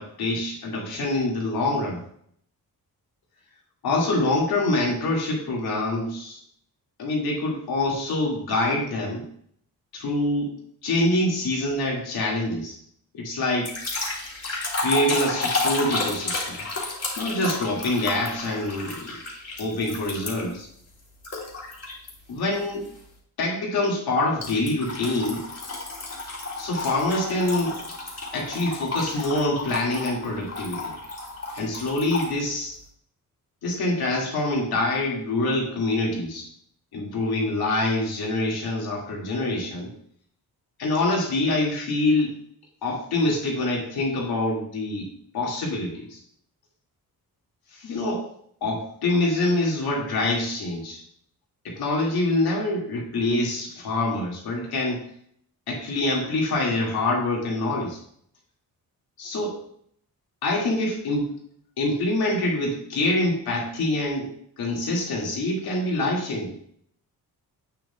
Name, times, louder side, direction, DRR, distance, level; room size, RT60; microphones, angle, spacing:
voice 1, 0.0-2.0 3.8-6.4 7.0-9.2 9.9-10.5 10.8-12.8 13.1-13.7 14.8-16.6 17.2-19.1 19.6-20.7 22.3-22.9 23.4-25.5 26.6-27.8 28.3-30.9 31.5-32.7 33.6-36.5 36.9-39.9 40.8-42.3 42.8-45.1 45.3-46.2 47.7-48.3 48.6-51.0 51.6-55.0 55.7-58.0 59.2-59.6 60.4-61.3 61.8-64.3 64.6-66.5, left 2 dB, 90° left, -2 dB, 2.3 m, -25 dB
sound 1, 13.6-20.6 21.2-22.1 22.6-22.9 24.4-32.3, left 2 dB, 40° left, 2.6 m, -31 dB
8.4 x 7.4 x 2.3 m, 0.65 s
cardioid pair, 95°, 36 cm